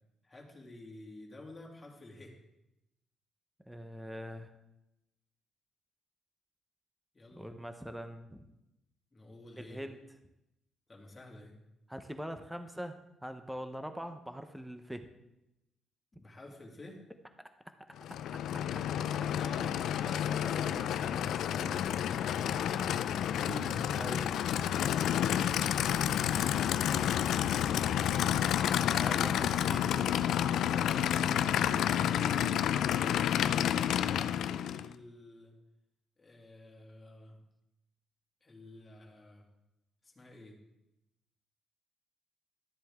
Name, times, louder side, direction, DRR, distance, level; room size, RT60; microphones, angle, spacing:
voice 1, 0.2-2.4 7.1-7.5 9.1-9.8 10.9-11.5 16.1-17.0 19.2-22.9 30.7-31.1 31.6-35.5 36.2-37.4 38.4-39.4 40.0-40.6, left 2 dB, 25° left, -1 dB, 2.4 m, -50 dB
voice 2, 3.7-4.5 7.3-8.4 9.6-10.0 11.9-15.1 23.5-24.4 26.9-27.1 28.9-30.1, equal, 5° right, 8 dB, 0.8 m, -42 dB
Aircraft / Idling, 18.0-34.9, left 10 dB, 75° left, 0.4 m, -30 dB
12.5 x 7.5 x 3.6 m, 0.91 s
cardioid pair, 90°, 0 cm